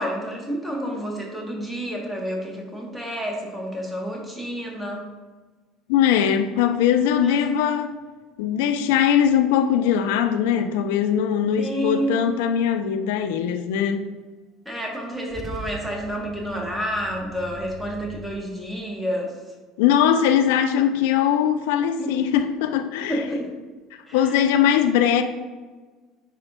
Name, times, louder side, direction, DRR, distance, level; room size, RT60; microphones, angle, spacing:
voice 1, 0.0-5.1 7.2-7.4 11.6-12.3 14.6-19.3 22.0-22.2 23.1-23.5 24.1-24.4, equal, 5° right, 1.6 m, -29 dB
voice 2, 5.9-8.0 8.4-14.1 19.8-23.2 24.1-25.2, left 9 dB, 65° left, 0.4 m, -21 dB
Car / Engine starting / Idling, 14.9-18.4, right 2 dB, 30° right, 0.6 m, -40 dB
10.0 x 4.3 x 2.5 m
figure-of-eight pair, 65°, 0 cm